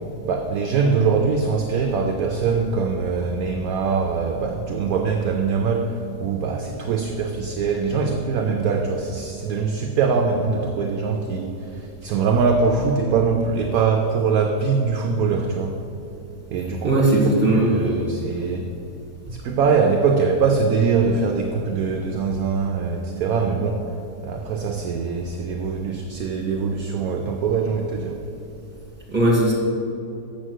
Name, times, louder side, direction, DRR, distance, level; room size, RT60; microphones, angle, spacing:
voice 1, 0.2-15.8 16.5-18.7 19.3-23.9 24.2-28.2, right 5 dB, 65° right, 3 dB, 1.0 m, -22 dB
voice 2, 16.8-17.9 29.1-29.5, right 1 dB, 5° right, -6 dB, 2.2 m, -18 dB
7.6 x 6.4 x 6.4 m, 2.7 s
omnidirectional pair, 1.9 m